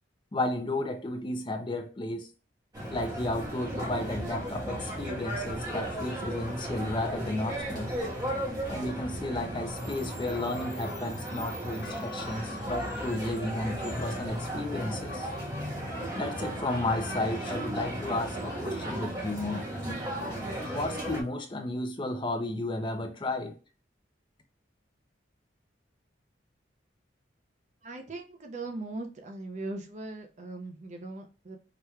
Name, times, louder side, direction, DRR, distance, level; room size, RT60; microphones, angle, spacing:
voice 1, 0.3-2.3 2.9-7.9 8.7-15.3 16.1-19.6 20.7-23.6, left 2 dB, 25° left, 0.5 m, -33 dB
sound 1, 2.7-21.2, right 1 dB, 20° right, 1.2 m, -35 dB
sound 2, 11.8-19.9, left 3 dB, 60° left, 1.2 m, -53 dB
voice 2, 27.8-31.6, right 2 dB, 40° right, 0.6 m, -39 dB
4.8 x 2.9 x 2.3 m
head